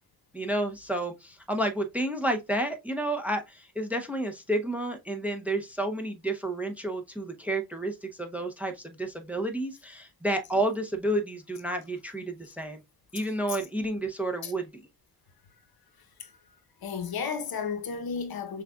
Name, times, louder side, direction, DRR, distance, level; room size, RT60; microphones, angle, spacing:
voice 1, 0.3-12.8 13.1-14.7, right 1 dB, 5° right, 0.6 m, -30 dB
voice 2, 16.8-18.6, left 6 dB, 65° left, 0.9 m, -33 dB
6.3 x 2.4 x 2.3 m
cardioid pair, 100°, 39 cm